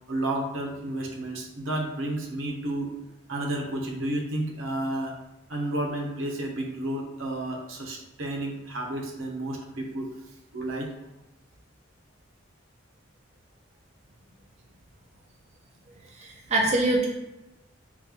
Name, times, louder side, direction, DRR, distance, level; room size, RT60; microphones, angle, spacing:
voice 1, 0.1-2.9 3.3-5.2 5.5-10.1 10.5-10.9 14.2-14.3, right 1 dB, 85° right, 1 dB, 0.7 m, -31 dB
voice 2, 16.2-17.1, right 2 dB, 35° right, -3 dB, 0.5 m, -24 dB
3.7 x 2.2 x 2.9 m, 0.95 s
head